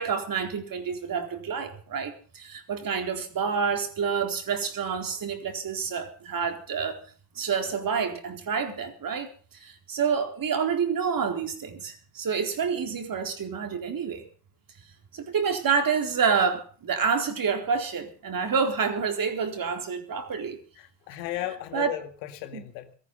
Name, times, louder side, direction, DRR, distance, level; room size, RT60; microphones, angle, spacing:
voice 1, 0.0-7.0 7.4-9.3 9.6-14.2 15.1-20.6 21.7-21.9 22.5-22.6, right 6 dB, 45° right, 4.1 m, -28 dB
voice 2, 20.8-22.9, left 13 dB, 75° left, 2.2 m, -36 dB
18.0 x 14.5 x 5.5 m
hypercardioid pair, 70°, 49 cm